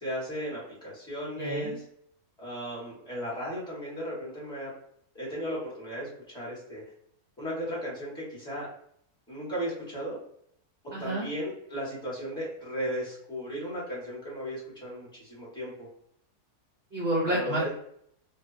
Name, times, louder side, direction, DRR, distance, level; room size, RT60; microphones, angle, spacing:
voice 1, 0.0-1.8 2.4-4.7 5.1-6.8 7.4-8.7 9.3-10.2 11.0-15.9 17.3-17.7, equal, 5° left, -6 dB, 0.8 m, -35 dB
voice 2, 1.4-1.8 10.9-11.3 16.9-17.7, right 1 dB, 65° right, -3 dB, 0.6 m, -29 dB
2.7 x 2.1 x 2.4 m, 0.69 s
omnidirectional pair, 1.7 m